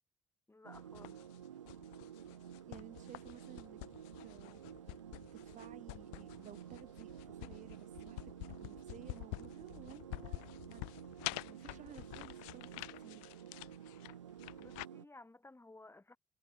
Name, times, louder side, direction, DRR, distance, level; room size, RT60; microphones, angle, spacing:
voice 1, 0.5-1.2 14.5-16.2, left 2 dB, 15° left, 4.6 m, -57 dB
sound 1, 0.6-15.0, right 9 dB, 85° right, 1.4 m, -52 dB
sound 2, 0.7-14.9, left 40 dB or more, 75° left, 4.1 m, -48 dB
voice 2, 2.7-3.8 4.2-4.6 5.3-8.3 8.6-10.4 10.7-10.8 11.3-13.3, right 10 dB, 55° right, 3.0 m, -55 dB
hypercardioid pair, 50°, 15 cm